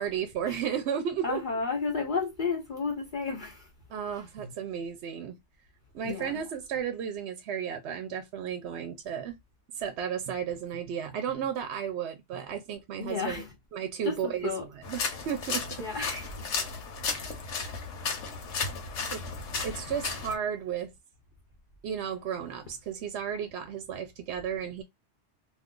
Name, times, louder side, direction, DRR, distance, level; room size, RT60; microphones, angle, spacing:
voice 1, 0.0-1.4 3.9-5.4 5.9-9.4 9.7-13.4 13.7-14.5 14.9-16.0 19.1-19.2 19.6-20.9 21.8-24.8, right 8 dB, 70° right, 0.8 m, -33 dB
voice 2, 1.2-3.7 6.0-6.4 13.0-13.5 14.0-14.7 15.8-16.5 17.1-17.4, left 4 dB, 50° left, 0.7 m, -32 dB
sound 1, 14.8-20.4, left 4 dB, 75° left, 1.1 m, -34 dB
2.5 x 2.4 x 3.6 m
omnidirectional pair, 1.3 m